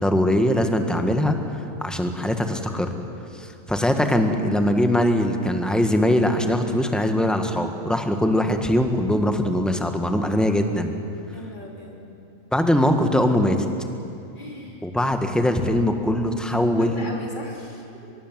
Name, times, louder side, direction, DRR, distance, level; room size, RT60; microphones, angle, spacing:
voice 1, 0.0-1.4 1.8-2.9 3.4-10.9 12.5-13.6 14.8-17.1, left 1 dB, ahead, 5 dB, 1.5 m, -21 dB
voice 2, 11.3-12.0 14.4-14.9 16.4-18.1, left 1 dB, 35° left, -1 dB, 3.5 m, -39 dB
23.5 x 22.0 x 7.6 m, 2.6 s
omnidirectional pair, 1.4 m